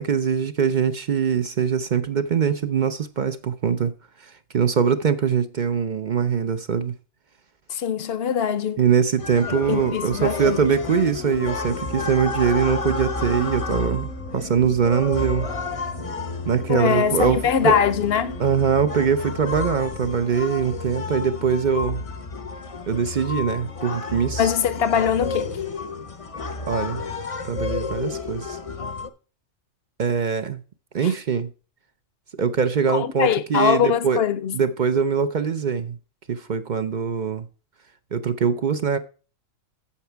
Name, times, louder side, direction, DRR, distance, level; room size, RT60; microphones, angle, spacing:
voice 1, 0.0-3.9 4.5-6.9 8.8-15.5 16.5-17.8 18.4-22.0 22.9-24.5 26.7-27.0 27.5-28.6 30.0-30.6 30.9-31.5 32.4-34.2 34.5-36.0 36.3-37.5 38.1-39.0, right 6 dB, 50° right, 0.6 m, -22 dB
voice 2, 7.7-8.8 9.5-10.7 16.7-18.4 24.4-25.5 31.0-31.1 32.9-34.6, left 8 dB, 60° left, 0.9 m, -22 dB
sound 1, 9.2-29.1, left 3 dB, 35° left, 0.7 m, -31 dB
sound 2, 9.2-23.7, right 1 dB, 75° right, 2.9 m, -43 dB
8.6 x 7.1 x 4.5 m
omnidirectional pair, 1.3 m